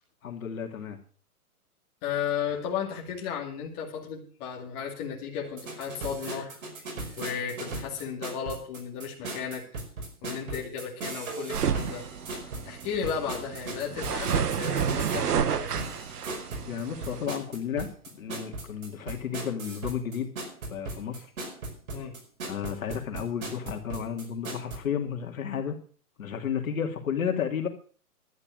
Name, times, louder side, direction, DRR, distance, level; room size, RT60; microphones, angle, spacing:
voice 1, 0.2-1.0 16.7-20.3 20.7-21.3 22.5-25.8 26.2-27.7, left 8 dB, 60° left, 3 dB, 2.8 m, -32 dB
voice 2, 2.0-6.6 7.1-9.6 10.2-12.0 12.6-15.7 21.9-22.1, left 7 dB, 25° left, -2 dB, 2.6 m, -34 dB
sound 1, 5.5-24.8, right 2 dB, 60° right, 5.3 m, -38 dB
sound 2, 11.5-17.3, right 7 dB, 85° right, 1.2 m, -31 dB
12.0 x 10.0 x 6.4 m, 0.42 s
hypercardioid pair, 165°, 45 cm